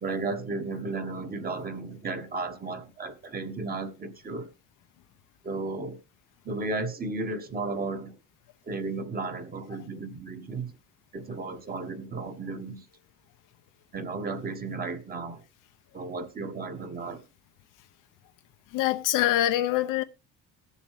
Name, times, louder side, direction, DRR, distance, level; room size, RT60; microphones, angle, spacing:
voice 1, 0.0-4.5 5.4-6.0 6.4-8.2 8.7-10.7 11.1-12.8 13.9-15.4 15.9-17.2, right 3 dB, 25° right, 1.4 m, -34 dB
voice 2, 18.7-20.0, left 14 dB, 70° left, 0.8 m, -24 dB
20.0 x 7.1 x 3.2 m
cardioid pair, 125°, 33 cm